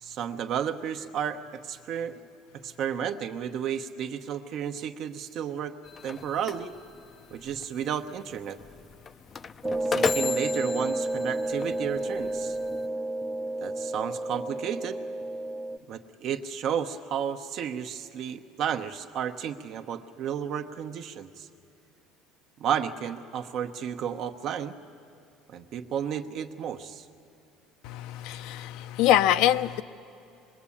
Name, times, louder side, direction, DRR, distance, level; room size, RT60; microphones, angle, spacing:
voice 1, 0.0-2.3 2.6-5.7 6.0-6.8 7.3-8.6 9.9-12.6 13.6-15.0 15.9-21.5 22.6-24.8 25.5-27.1, right 8 dB, 50° right, 1.0 m, -32 dB
sound 1, 5.8-12.9, left 6 dB, 25° left, 0.5 m, -36 dB
sound 2, 9.6-15.8, right 2 dB, 15° right, 0.7 m, -31 dB
voice 2, 27.8-29.8, left 12 dB, 70° left, 0.7 m, -24 dB
25.5 x 21.5 x 8.6 m
cardioid pair, 145°, 0 cm